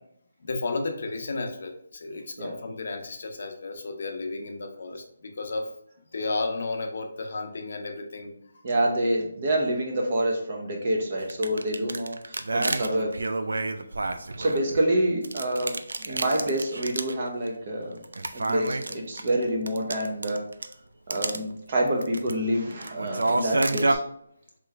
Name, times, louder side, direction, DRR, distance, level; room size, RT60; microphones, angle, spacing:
voice 1, 0.4-5.7 6.1-8.3, left 3 dB, 50° left, 4 dB, 0.6 m, -33 dB
voice 2, 8.6-13.2 14.4-15.8 16.1-18.0 18.3-20.4 21.1-24.0, right 1 dB, 35° right, 0 dB, 0.7 m, -27 dB
sound 1, 11.2-14.8 15.2-17.2 17.5-17.6 18.0-20.7 21.1-21.4 21.9-22.3 22.7-23.9, right 2 dB, 85° right, 0.4 m, -29 dB
3.7 x 3.0 x 3.3 m, 0.70 s
hypercardioid pair, 175°, 0 cm